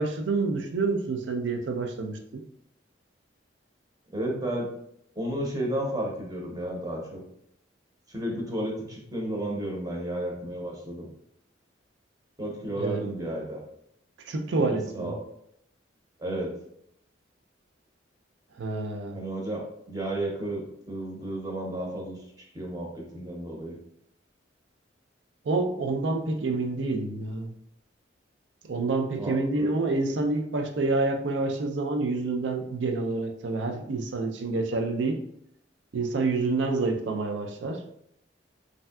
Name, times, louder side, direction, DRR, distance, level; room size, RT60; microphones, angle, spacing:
voice 1, 0.0-2.4 12.8-13.0 14.3-15.1 18.5-19.2 25.4-27.5 28.7-35.2 35.9-37.8, right 3 dB, 80° right, 5 dB, 0.4 m, -28 dB
voice 2, 4.1-4.7 5.2-7.2 8.1-11.1 12.4-13.6 14.7-15.2 16.2-16.6 19.1-22.2 22.5-23.8 29.2-29.7, right 1 dB, 20° right, -1 dB, 0.7 m, -32 dB
3.2 x 2.6 x 2.3 m, 0.73 s
head